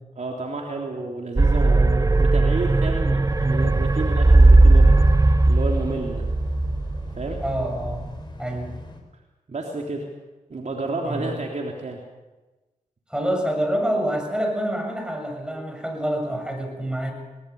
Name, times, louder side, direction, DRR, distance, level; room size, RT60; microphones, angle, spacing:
voice 1, 0.2-6.2 7.2-7.4 9.5-10.0 10.5-12.0, right 3 dB, 55° right, 1 dB, 3.4 m, -31 dB
sound 1, 1.4-8.1, right 2 dB, 25° right, 0.8 m, -17 dB
sound 2, 3.2-9.0, left 1 dB, 30° left, 4.7 m, -40 dB
voice 2, 7.4-8.0 8.4-8.8 11.0-11.3 13.1-17.1, equal, 5° right, 4 dB, 7.2 m, -27 dB
20.5 x 19.0 x 7.1 m, 1.1 s
cardioid pair, 50°, 15 cm